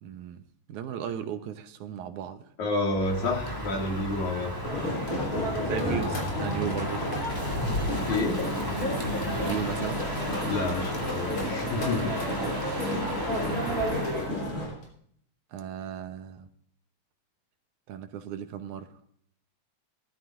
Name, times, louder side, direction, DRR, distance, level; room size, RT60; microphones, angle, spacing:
voice 1, 0.0-0.4 0.7-2.4 5.6-7.0 9.4-10.1 12.7-13.0 15.5-16.5 17.9-18.9, right 9 dB, 75° right, 8 dB, 2.3 m, -36 dB
voice 2, 2.6-4.5 8.0-8.4 10.5-12.1, left 2 dB, 65° left, 1 dB, 3.6 m, -29 dB
Crow, 2.9-14.3, equal, 5° left, 2.2 m, -35 dB
sound 1, 4.6-14.6, equal, 25° left, 4.3 m, -31 dB
sound 2, 4.8-14.9, left 2 dB, 50° left, 4.7 m, -38 dB
19.0 x 13.0 x 2.6 m, 0.62 s
omnidirectional pair, 3.6 m